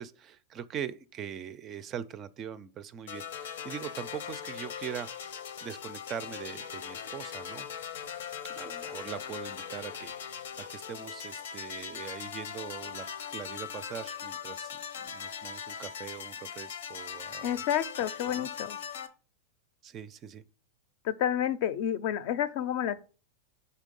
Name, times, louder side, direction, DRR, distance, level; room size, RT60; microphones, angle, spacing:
voice 1, 0.0-5.1 5.6-7.7 8.5-13.1 13.3-14.7 15.0-17.6 18.2-18.5 19.8-20.4, right 9 dB, 30° right, 0.4 m, -41 dB
sound 1, 3.1-19.1, left 8 dB, 90° left, 0.7 m, -40 dB
voice 2, 17.4-18.8 21.0-23.0, left 10 dB, 55° left, 0.5 m, -30 dB
5.6 x 3.6 x 5.2 m
supercardioid pair, 150°, 0 cm